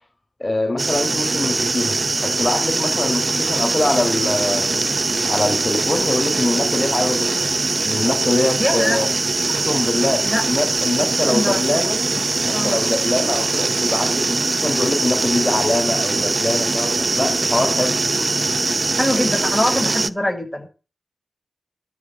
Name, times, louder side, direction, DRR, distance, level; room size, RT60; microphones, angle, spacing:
voice 1, 0.4-7.5 7.8-9.1 9.5-12.0 12.4-18.0, left 2 dB, 25° left, 2 dB, 4.0 m, -23 dB
sound 1, 0.8-20.1, right 3 dB, 40° right, 0.7 m, -21 dB
voice 2, 8.6-9.0 10.2-10.4 11.0-11.6 12.5-12.8 19.0-20.7, left 1 dB, 5° left, 2 dB, 6.4 m, -23 dB
13.0 x 7.4 x 9.6 m, 0.35 s
cardioid pair, 55°, 0 cm